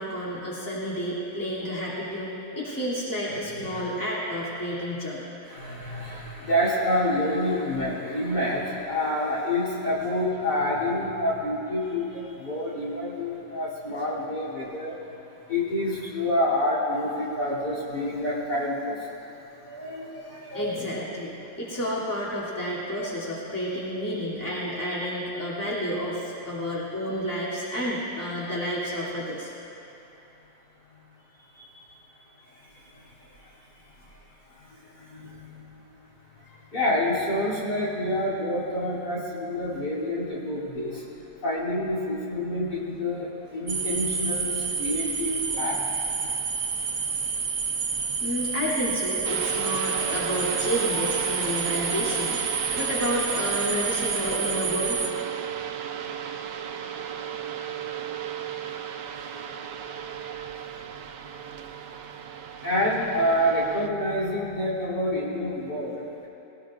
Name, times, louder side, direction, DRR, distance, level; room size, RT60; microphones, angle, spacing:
voice 1, 0.0-5.2 20.5-29.5 31.5-32.0 36.5-36.6 48.2-55.1, equal, 10° left, -8 dB, 2.8 m, -30 dB
voice 2, 3.5-3.9 5.4-15.2 15.5-19.1 19.6-20.9 32.5-33.5 34.6-35.8 36.7-41.1 41.4-45.8 62.6-66.3, left 1 dB, 65° left, -7 dB, 3.7 m, -28 dB
sound 1, 43.7-55.1, right 5 dB, 60° right, 1.4 m, -29 dB
sound 2, 49.2-63.9, right 8 dB, 75° right, 1.3 m, -34 dB
20.5 x 18.5 x 2.5 m, 3.0 s
omnidirectional pair, 1.9 m